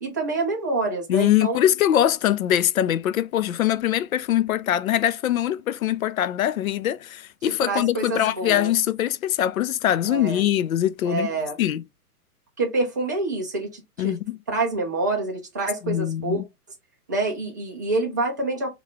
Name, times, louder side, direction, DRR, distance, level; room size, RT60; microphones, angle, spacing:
voice 1, 0.0-1.6 7.6-8.7 10.1-10.4 11.0-11.6 12.6-14.1 14.5-16.4 17.1-18.7, right 2 dB, 15° right, 0.3 m, -27 dB
voice 2, 1.1-11.3 11.6-11.8 14.0-14.4 15.9-16.4, left 11 dB, 65° left, 0.5 m, -22 dB
4.7 x 2.5 x 3.3 m
figure-of-eight pair, 120°, 46 cm